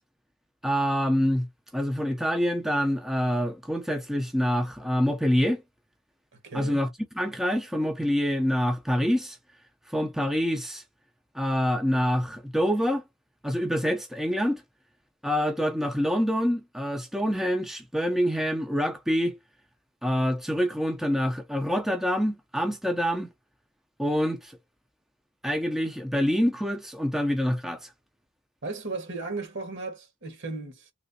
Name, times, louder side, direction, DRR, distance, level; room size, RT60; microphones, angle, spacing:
voice 1, 0.6-1.5 1.7-5.6 6.5-6.9 7.2-9.4 9.9-10.8 11.3-13.0 13.4-14.6 15.2-19.4 20.0-23.3 24.0-24.6 25.4-27.9, equal, ahead, 0.4 m, -26 dB
voice 2, 6.3-6.8 28.6-30.9, right 3 dB, 60° right, 1.3 m, -36 dB
3.2 x 3.0 x 2.7 m
head